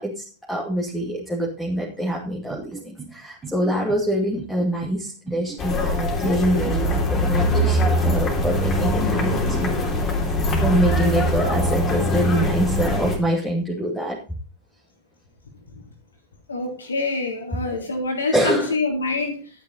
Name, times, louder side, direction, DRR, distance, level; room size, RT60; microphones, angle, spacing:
voice 1, 0.0-9.7 10.3-14.2 18.3-18.7, equal, 5° left, -3 dB, 2.5 m, -25 dB
sound 1, 2.5-3.1 3.4-4.0 4.4-5.0 5.3-5.9 6.2-6.8 7.1-7.8 8.1-8.7 9.0-9.7, right 5 dB, 20° right, 2.7 m, -37 dB
sound 2, 5.6-13.2, equal, 25° left, 3.3 m, -22 dB
voice 2, 16.5-19.5, left 3 dB, 70° left, 2 dB, 3.5 m, -26 dB
12.0 x 9.3 x 4.2 m, 0.35 s
figure-of-eight pair, 90°, 0 cm